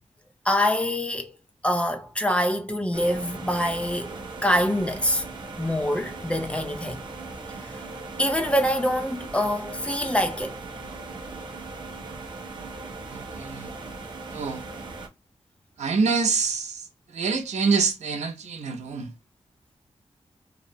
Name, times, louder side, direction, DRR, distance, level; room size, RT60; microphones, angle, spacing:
voice 1, 0.5-1.4 1.6-4.2 4.4-5.2 5.6-7.0 8.2-10.6, left 1 dB, 10° left, 0.3 m, -25 dB
sound 1, 2.9-15.1, right 3 dB, 45° right, 0.5 m, -38 dB
voice 2, 13.1-13.7 14.3-14.6 15.8-16.8 17.1-19.1, right 4 dB, 85° right, 0.6 m, -26 dB
2.7 x 2.0 x 2.6 m
wide cardioid pair, 165°, 11 cm